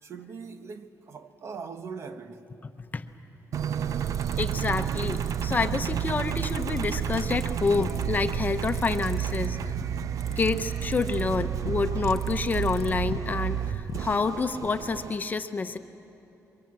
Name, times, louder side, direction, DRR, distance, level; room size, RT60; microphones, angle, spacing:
voice 1, 0.0-2.5, right 5 dB, 50° right, 1.1 m, -41 dB
Engine, 3.5-15.2, right 10 dB, 70° right, 0.5 m, -30 dB
sound 1, 4.0-5.5 6.4-8.0 8.6-9.5 10.2-11.4 12.2-12.9, left 2 dB, 5° left, 1.2 m, -48 dB
voice 2, 4.3-9.6 10.4-15.8, left 4 dB, 30° left, 0.9 m, -28 dB
sound 2, 6.7-14.1, left 8 dB, 60° left, 0.7 m, -41 dB
28.0 x 23.5 x 7.7 m
cardioid pair, 130°, 6 cm